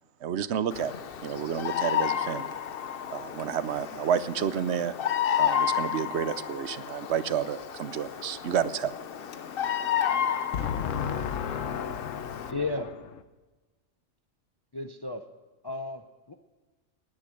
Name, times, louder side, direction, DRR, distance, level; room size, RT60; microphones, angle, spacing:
voice 1, 0.2-0.9 1.2-2.6 3.1-4.9 5.3-9.0, right 8 dB, 60° right, 0.9 m, -30 dB
Bird vocalization bird call bird song, 0.7-12.5, left 9 dB, 55° left, 0.8 m, -31 dB
voice 2, 2.7-3.5 9.4-12.6, left 7 dB, 70° left, 1.2 m, -35 dB
voice 3, 12.5-12.9 14.7-15.3 15.6-16.3, left 3 dB, 30° left, 0.4 m, -33 dB
19.0 x 10.0 x 6.4 m
omnidirectional pair, 1.4 m